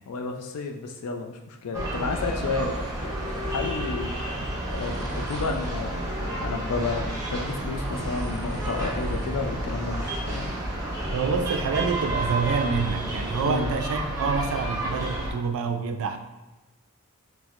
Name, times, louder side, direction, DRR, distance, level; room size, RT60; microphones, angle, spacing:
voice 1, 0.1-4.1 4.7-10.7 13.4-13.7, left 3 dB, 80° left, 3 dB, 0.4 m, -32 dB
sound 1, 1.7-15.3, right 1 dB, 15° right, 0.6 m, -30 dB
voice 2, 11.1-16.2, right 5 dB, 65° right, 7 dB, 0.3 m, -27 dB
4.2 x 2.0 x 2.4 m, 1.0 s
head